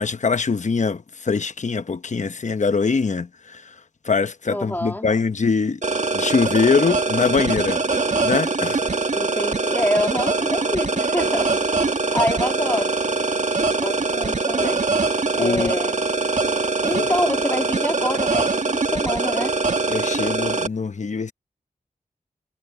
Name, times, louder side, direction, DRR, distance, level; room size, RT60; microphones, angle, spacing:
voice 1, 0.0-3.7 4.0-5.8 6.1-7.8 8.2-8.9 15.4-15.7 16.9-17.1 19.9-21.3, left 5 dB, 55° left, 0.9 m, -23 dB
voice 2, 4.5-5.1 9.1-11.5 12.1-13.0 13.7-14.9 15.3-16.1 16.8-19.6, left 1 dB, 15° left, 3.0 m, -26 dB
sound 1, 5.8-20.7, right 3 dB, 55° right, 1.8 m, -23 dB
wide cardioid pair, 60°, 14 cm